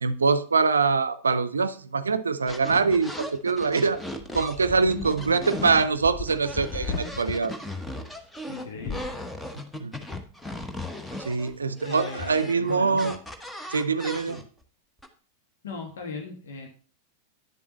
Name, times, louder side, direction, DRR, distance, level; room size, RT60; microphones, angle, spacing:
voice 1, 0.0-4.0 4.3-7.5 9.8-9.9 11.2-13.2 13.7-14.4, right 4 dB, 75° right, 0.6 m, -24 dB
sound 1, 2.5-5.9 6.1-14.6 15.0-15.1, left 1 dB, 5° left, 1.0 m, -37 dB
sound 2, 4.2-7.4 8.7-9.1, left 4 dB, 30° left, 1.2 m, -36 dB
voice 2, 4.7-5.6 8.5-9.1 11.8-13.1 14.3-14.4 15.6-16.7, left 4 dB, 65° left, 1.5 m, -38 dB
9.8 x 7.2 x 3.0 m
figure-of-eight pair, 90°, 0 cm